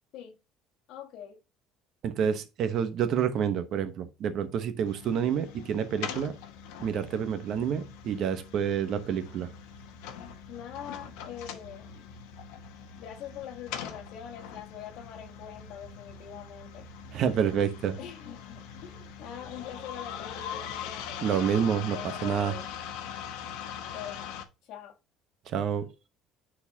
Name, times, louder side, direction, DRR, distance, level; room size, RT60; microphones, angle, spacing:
voice 1, 0.9-1.4 10.5-12.1 13.0-16.9 18.0-21.3 21.9-22.7 23.9-25.0, left 9 dB, 55° left, 1.4 m, -43 dB
voice 2, 2.0-6.4 6.8-9.5 17.1-18.0 21.2-22.6 25.5-25.8, right 8 dB, 45° right, 0.9 m, -28 dB
sound 1, 4.8-24.4, left 8 dB, 90° left, 1.1 m, -42 dB
9.6 x 4.3 x 2.8 m
cardioid pair, 170°, 0 cm